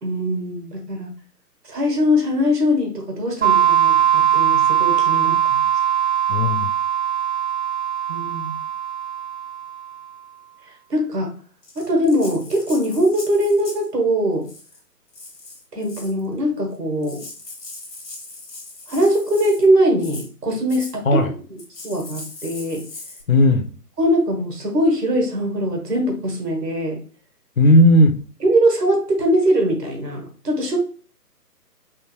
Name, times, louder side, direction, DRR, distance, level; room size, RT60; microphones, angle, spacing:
voice 1, 0.0-1.1 1.7-5.7 8.1-8.5 10.9-11.3 11.7-14.5 15.7-17.2 18.9-21.2 21.5-22.8 24.0-27.0 28.4-30.8, equal, 75° right, 2 dB, 1.4 m, -21 dB
sound 1, 3.4-9.9, right 10 dB, 45° right, 0.8 m, -20 dB
voice 2, 6.3-6.7 21.1-21.3 23.3-23.7 27.6-28.1, left 1 dB, 55° left, 5 dB, 0.7 m, -14 dB
Rattle (instrument), 11.6-13.9 14.4-14.8 15.1-16.2 16.7-16.8 17.0-19.7 20.0-20.3 20.7-21.0 21.6-23.2, left 2 dB, 70° left, 1.3 m, -39 dB
3.5 x 2.5 x 3.0 m, 0.40 s
figure-of-eight pair, 140°, 48 cm